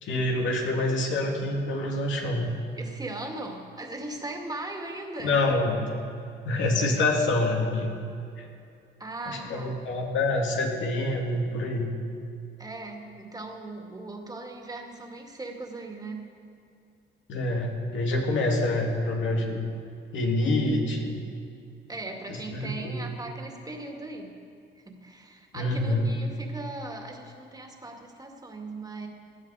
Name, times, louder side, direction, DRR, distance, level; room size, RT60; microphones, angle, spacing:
voice 1, 0.0-2.5 5.2-5.8 6.5-7.9 8.4-8.5 9.3-11.9 17.3-19.6 20.1-21.2 22.3-23.0 25.5-26.1, left 2 dB, 75° left, 0 dB, 2.5 m, -26 dB
voice 2, 2.8-5.5 9.0-9.7 12.6-16.2 21.9-24.3 24.8-29.1, right 2 dB, 20° right, 2 dB, 2.2 m, -38 dB
18.0 x 12.0 x 5.0 m, 2.5 s
cardioid pair, 90°, 20 cm